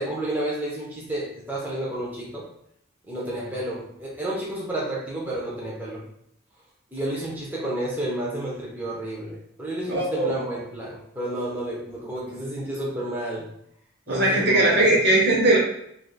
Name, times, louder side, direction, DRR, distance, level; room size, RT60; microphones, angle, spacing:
voice 1, 0.0-2.5 3.1-6.0 6.9-13.5 14.1-14.9, right 1 dB, 10° right, -5 dB, 0.5 m, -31 dB
voice 2, 9.9-10.3 14.1-15.6, right 2 dB, 50° right, -2 dB, 0.8 m, -19 dB
2.5 x 2.4 x 3.8 m, 0.74 s
head